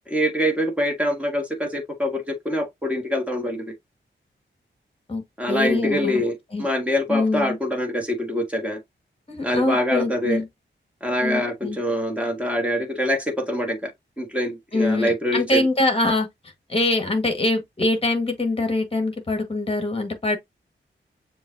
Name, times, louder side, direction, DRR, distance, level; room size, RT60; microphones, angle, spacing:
voice 1, 0.1-3.7 5.4-8.8 9.4-10.4 11.0-13.9 14.2-15.6, equal, 5° right, 1.8 m, -25 dB
voice 2, 5.5-6.2 6.5-6.7 7.1-7.6 9.3-10.5 11.2-11.8 14.7-16.3 16.7-20.4, left 2 dB, 30° left, 1.5 m, -23 dB
6.9 x 2.7 x 2.7 m
wide cardioid pair, 115°, 20 cm